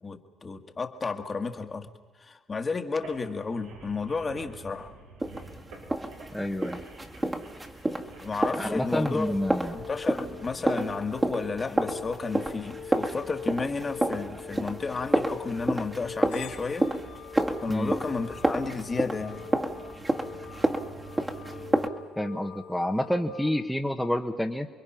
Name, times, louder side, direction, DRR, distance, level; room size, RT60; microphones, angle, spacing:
voice 1, 0.0-1.9 2.2-4.9 8.2-9.4 9.7-16.9 17.6-19.5, left 4 dB, 30° left, 6 dB, 1.8 m, -32 dB
sound 1, 2.9-8.3, right 2 dB, 80° right, 5.7 m, -49 dB
sound 2, 5.2-21.9, right 1 dB, 15° right, 2.2 m, -30 dB
voice 2, 6.3-6.8 8.6-9.7 17.7-17.9 22.2-24.7, left 1 dB, ahead, 1 dB, 1.4 m, -28 dB
sound 3, 9.0-23.5, left 6 dB, 80° left, 2.4 m, -43 dB
29.5 x 22.0 x 5.9 m, 1.4 s
supercardioid pair, 75°, 0 cm